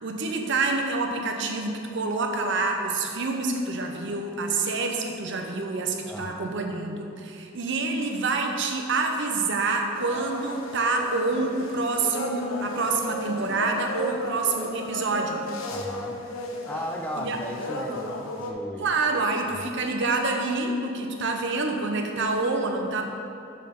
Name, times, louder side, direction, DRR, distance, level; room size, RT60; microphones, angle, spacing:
voice 1, 0.0-15.4 17.2-17.4 18.8-23.0, right 3 dB, 65° right, 3 dB, 0.7 m, -27 dB
voice 2, 6.1-6.6 15.7-16.2 16.7-18.9 19.5-19.7, left 1 dB, 5° left, 2 dB, 0.4 m, -36 dB
sound 1, 9.9-18.5, left 1 dB, 85° left, 0.7 m, -35 dB
5.3 x 5.2 x 5.8 m, 2.6 s
head